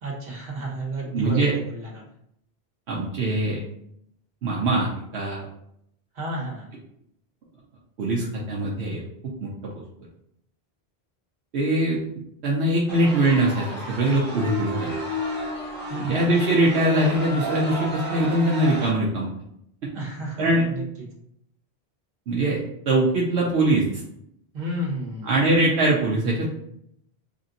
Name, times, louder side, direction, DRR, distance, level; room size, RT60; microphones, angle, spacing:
voice 1, 0.0-2.0 6.1-6.7 15.9-16.3 19.9-20.8 24.5-25.3, right 1 dB, 60° right, -2 dB, 1.3 m, -32 dB
voice 2, 1.1-1.5 2.9-3.6 4.4-5.5 8.0-9.0 9.4-9.5 11.5-12.0 12.4-15.0 16.0-19.3 20.4-20.6 22.3-22.6 22.9-23.8 25.2-26.5, right 1 dB, 80° right, -3 dB, 0.9 m, -22 dB
sound 1, 12.9-18.9, equal, 45° right, 1.3 m, -32 dB
3.5 x 2.5 x 3.9 m, 0.75 s
omnidirectional pair, 1.1 m